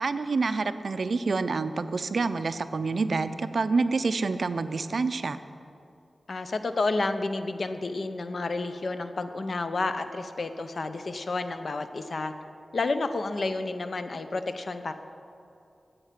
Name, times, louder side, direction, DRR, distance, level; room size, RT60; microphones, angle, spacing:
voice 1, 0.0-5.4, right 4 dB, 65° right, 12 dB, 0.5 m, -27 dB
voice 2, 6.3-12.3 12.7-14.9, left 3 dB, 60° left, 9 dB, 0.7 m, -30 dB
13.5 x 8.1 x 5.9 m, 2.6 s
wide cardioid pair, 105°, 0 cm